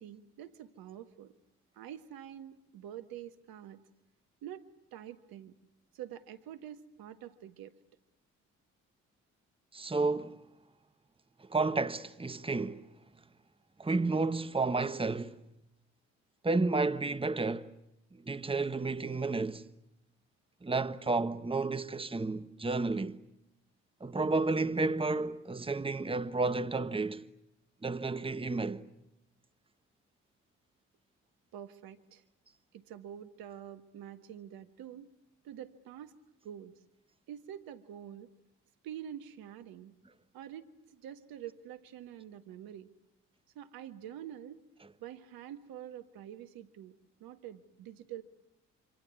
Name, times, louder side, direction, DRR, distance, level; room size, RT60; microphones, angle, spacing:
voice 1, 0.0-1.3 1.7-3.8 4.4-4.6 4.9-5.5 5.9-7.7 31.5-32.2 32.7-35.1 35.4-36.1 36.4-36.8 37.3-38.3 38.8-39.9 40.3-42.9 43.5-44.6 45.0-48.2, right 10 dB, 70° right, 1.6 m, -46 dB
voice 2, 9.7-10.4 11.4-12.9 13.8-15.4 16.4-17.7 18.1-19.7 20.6-23.2 24.0-27.3 27.8-28.9, right 3 dB, 15° right, 1.3 m, -31 dB
26.5 x 26.0 x 8.4 m
hypercardioid pair, 45°, 37 cm